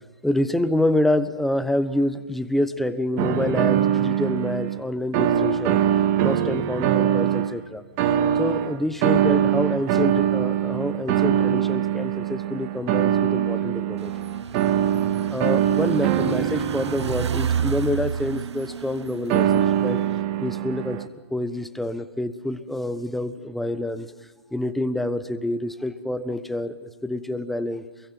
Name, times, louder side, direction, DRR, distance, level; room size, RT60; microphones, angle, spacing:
voice 1, 0.2-5.8 6.2-7.8 8.4-14.1 15.3-20.0 20.4-21.0 21.3-24.1 24.5-27.8, left 1 dB, ahead, 12 dB, 1.2 m, -27 dB
sound 1, 3.2-4.8 5.1-7.5 8.0-18.0 19.3-21.1, right 10 dB, 30° right, 2.0 m, -23 dB
sound 2, 14.0-20.2, right 7 dB, 80° right, 0.9 m, -31 dB
28.0 x 22.5 x 9.0 m, 1.2 s
hypercardioid pair, 140°, 14 cm